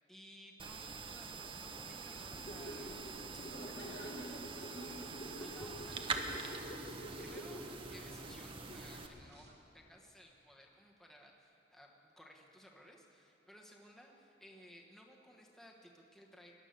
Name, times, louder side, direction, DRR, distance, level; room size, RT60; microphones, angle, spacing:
voice 1, 0.0-3.0 5.4-6.8 7.2-9.5 9.7-16.5, equal, ahead, -1 dB, 1.2 m, -58 dB
sound 1, 0.6-9.1, right 4 dB, 30° right, 0.9 m, -45 dB
sound 2, 2.4-9.2 9.4-9.5, equal, 50° left, 2.0 m, -49 dB
voice 2, 3.3-5.6, equal, 85° left, -2 dB, 3.9 m, -49 dB
sound 3, 4.4-9.5, right 1 dB, 75° right, 2.9 m, -61 dB
18.0 x 12.0 x 6.6 m, 2.8 s
head